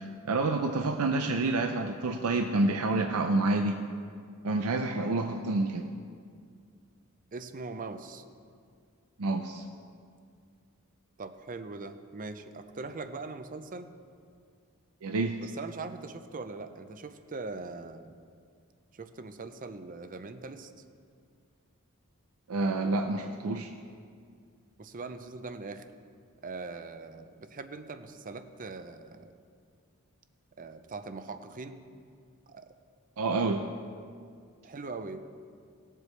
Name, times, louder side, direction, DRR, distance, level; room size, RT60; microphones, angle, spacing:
voice 1, 0.0-3.8 4.4-5.9 9.2-9.6 15.0-15.3 22.5-23.7 33.2-33.6, right 2 dB, 85° right, 5 dB, 0.6 m, -28 dB
voice 2, 7.3-8.3 11.2-13.9 15.4-18.1 18.9-20.7 24.8-25.8 26.4-29.4 30.6-31.8 32.5-32.7 33.3-33.5 34.6-35.2, right 3 dB, 40° right, 9 dB, 0.6 m, -41 dB
19.0 x 7.6 x 3.3 m, 2.2 s
head